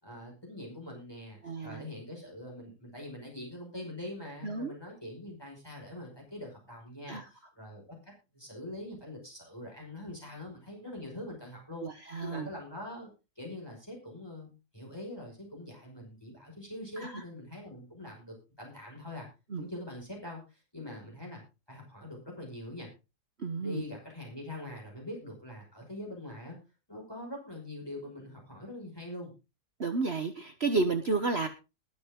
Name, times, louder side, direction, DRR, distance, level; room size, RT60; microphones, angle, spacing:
voice 1, 0.0-8.0 8.3-11.9 12.2-13.1 13.4-19.3 19.6-21.4 21.7-22.9 23.6-26.6 26.9-29.3, left 1 dB, 15° left, 0 dB, 5.4 m, -43 dB
voice 2, 1.4-1.8 4.4-4.8 7.1-7.3 11.8-12.5 17.0-17.2 19.5-19.6 23.4-23.8 29.8-31.5, right 3 dB, 45° right, 7 dB, 1.4 m, -31 dB
20.0 x 8.2 x 3.7 m, 0.29 s
omnidirectional pair, 1.7 m